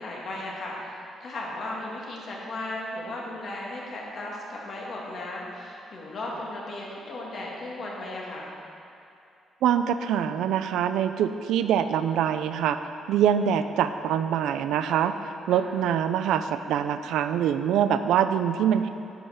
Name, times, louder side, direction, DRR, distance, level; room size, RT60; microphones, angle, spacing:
voice 1, 0.0-8.5 15.5-15.7, left 1 dB, 50° left, -3 dB, 2.1 m, -36 dB
voice 2, 9.6-12.8 13.1-18.9, right 9 dB, 90° right, 10 dB, 0.4 m, -24 dB
10.0 x 5.5 x 6.4 m, 2.6 s
cardioid pair, 125°, 0 cm